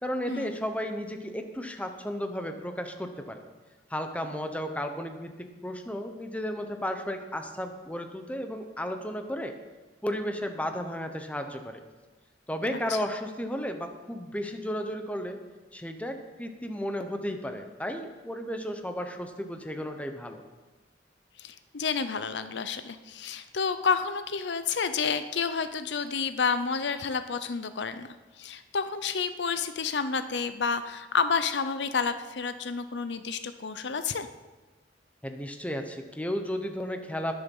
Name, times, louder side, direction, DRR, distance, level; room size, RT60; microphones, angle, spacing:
voice 1, 0.0-3.4 3.9-9.5 10.0-11.8 12.5-15.4 15.7-20.4 35.2-37.3, equal, 10° left, 6 dB, 1.0 m, -34 dB
voice 2, 21.4-28.1 28.4-34.3, left 5 dB, 75° left, 11 dB, 0.7 m, -30 dB
20.5 x 7.1 x 5.5 m, 1.3 s
head